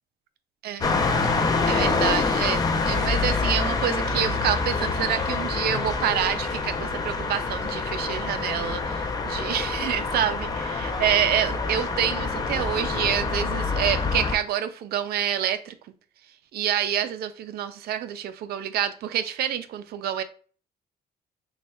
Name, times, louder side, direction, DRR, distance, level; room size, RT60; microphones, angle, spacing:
voice 1, 0.6-1.0 1.7-15.7 16.5-20.2, right 10 dB, 65° right, 11 dB, 0.4 m, -27 dB
sound 1, 0.8-14.4, left 4 dB, 20° left, 0.4 m, -26 dB
3.2 x 2.3 x 4.2 m, 0.42 s
cardioid pair, 175°, 17 cm